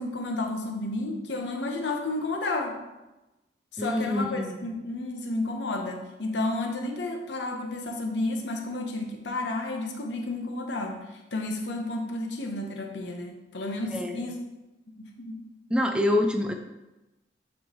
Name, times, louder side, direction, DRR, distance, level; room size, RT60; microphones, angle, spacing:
voice 1, 0.0-2.8 3.7-11.0 11.3-14.4 14.9-15.4, left 2 dB, 85° left, 3 dB, 0.9 m, -31 dB
voice 2, 3.8-4.6 13.9-14.2 15.7-16.5, left 1 dB, 5° right, 4 dB, 0.3 m, -26 dB
9.1 x 3.4 x 3.0 m, 1.0 s
head